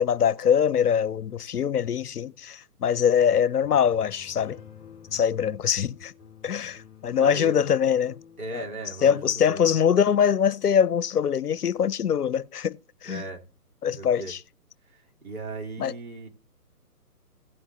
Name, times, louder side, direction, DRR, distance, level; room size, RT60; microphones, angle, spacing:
voice 1, 0.0-4.6 5.1-6.1 6.4-8.2 8.5-8.6 9.0-12.8 13.0-13.2 13.8-14.4 15.8-15.9, left 8 dB, 75° left, 0.7 m, -23 dB
sound 1, 3.6-9.1, left 8 dB, 5° left, 1.6 m, -51 dB
voice 2, 7.2-7.6 8.4-9.6 13.0-13.4 13.9-14.3 14.9-16.3, right 2 dB, 65° right, 3.4 m, -37 dB
16.5 x 8.0 x 2.7 m
figure-of-eight pair, 145°, 47 cm